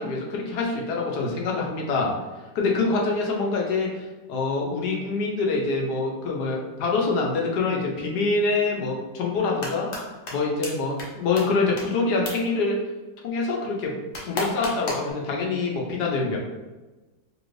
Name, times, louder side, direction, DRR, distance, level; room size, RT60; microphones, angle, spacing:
voice 1, 0.0-2.1 2.5-9.9 10.3-12.8 13.2-13.9 14.2-16.4, left 3 dB, 80° left, -1 dB, 1.3 m, -25 dB
sound 1, 9.4-10.0 10.3-10.4 10.6-10.7 11.0-11.1 11.4-11.5 11.8-11.9 12.2-12.3 14.1-15.1, left 2 dB, 55° left, 0.9 m, -30 dB
3.3 x 2.6 x 3.1 m, 1.2 s
omnidirectional pair, 1.7 m